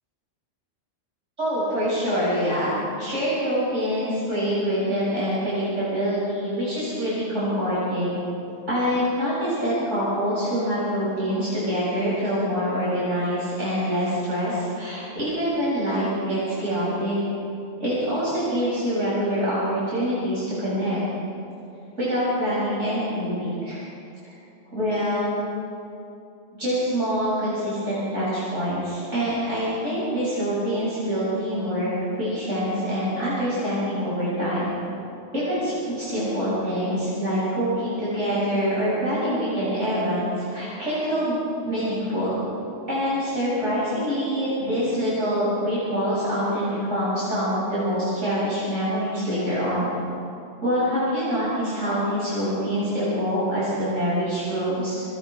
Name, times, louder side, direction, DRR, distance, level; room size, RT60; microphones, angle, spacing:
voice 1, 1.4-8.2 8.7-17.2 17.8-21.0 22.0-23.8 24.3-24.4 24.7-25.4 26.6-34.7 35.3-41.4 41.6-42.3 42.9-49.9 50.6-55.0, equal, 70° right, -10 dB, 7.6 m, -25 dB
29.5 x 27.0 x 4.7 m, 2.7 s
omnidirectional pair, 1.3 m